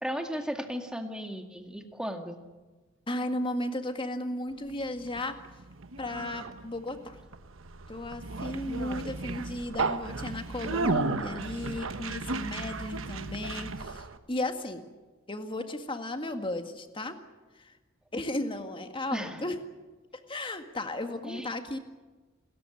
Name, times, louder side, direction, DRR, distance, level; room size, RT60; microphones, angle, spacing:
voice 1, 0.0-2.4 19.1-19.4 21.2-21.5, equal, 5° right, 4 dB, 2.1 m, -35 dB
voice 2, 3.1-5.3 6.0-7.2 7.9-14.9 15.3-17.2 17.6-17.7 18.1-19.6 20.3-21.8, left 1 dB, 25° left, 7 dB, 1.9 m, -35 dB
Conversation, 4.7-14.2, right 3 dB, 70° right, 1.2 m, -34 dB
27.5 x 14.0 x 9.8 m, 1.2 s
head